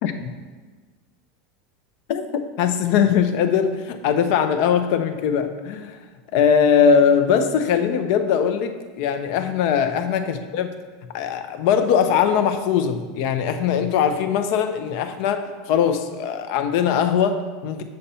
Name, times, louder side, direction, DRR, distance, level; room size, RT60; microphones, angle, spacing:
voice 1, 2.6-6.0 6.3-10.7 11.1-17.8, left 7 dB, 50° left, 8 dB, 0.6 m, -20 dB
6.8 x 6.5 x 4.3 m, 1.4 s
supercardioid pair, 165°, 0 cm